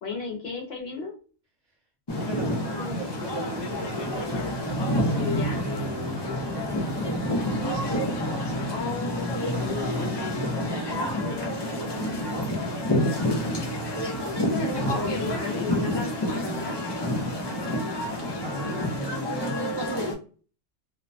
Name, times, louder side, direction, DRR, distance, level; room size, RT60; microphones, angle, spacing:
voice 1, 0.0-1.1 5.2-5.6 8.7-10.1 14.8-16.8, left 5 dB, 60° left, 1 dB, 0.8 m, -34 dB
sound 1, 2.1-20.1, left 1 dB, 40° left, 0.3 m, -28 dB
voice 2, 2.2-4.3 5.1-5.3 5.6-7.6 10.3-13.2 17.4-17.9 18.2-19.7, right 1 dB, 40° right, -1 dB, 1.1 m, -38 dB
2.6 x 2.1 x 2.5 m, 0.38 s
omnidirectional pair, 1.3 m